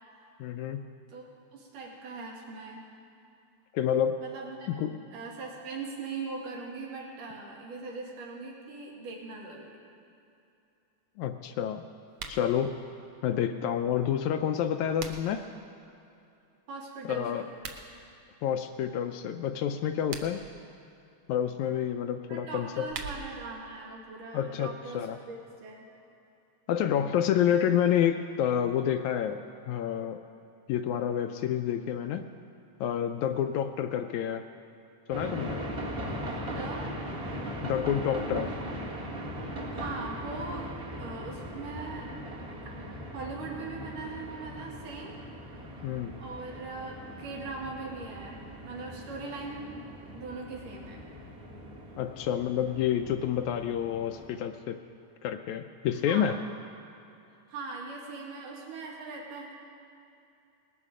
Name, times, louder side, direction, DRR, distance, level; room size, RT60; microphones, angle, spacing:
voice 1, 0.4-0.8 3.7-4.2 4.8-4.9 11.2-11.8 12.3-12.8 13.2-15.4 17.1-17.4 18.4-20.4 21.3-22.9 24.3-25.2 26.7-30.2 30.7-32.2 32.8-34.4 35.1-35.6 37.6-38.5 45.8-46.2 52.0-54.8 55.2-56.4, left 9 dB, 80° left, 7 dB, 1.8 m, -29 dB
voice 2, 1.5-2.8 4.2-4.7 5.1-9.7 16.7-17.5 22.3-25.9 36.4-36.9 39.4-40.7 41.0-42.1 42.6-45.1 46.2-49.9 50.1-51.0 56.1-56.4 57.5-59.5, right 3 dB, 85° right, -2 dB, 3.7 m, -40 dB
sound 1, 12.1-12.5 14.5-15.5 17.5-17.8 19.9-20.5 22.5-23.5, right 5 dB, 65° right, 1.5 m, -42 dB
sound 2, 35.1-54.4, equal, 30° right, 1.0 m, -40 dB
19.5 x 12.5 x 5.0 m, 2.7 s
omnidirectional pair, 3.7 m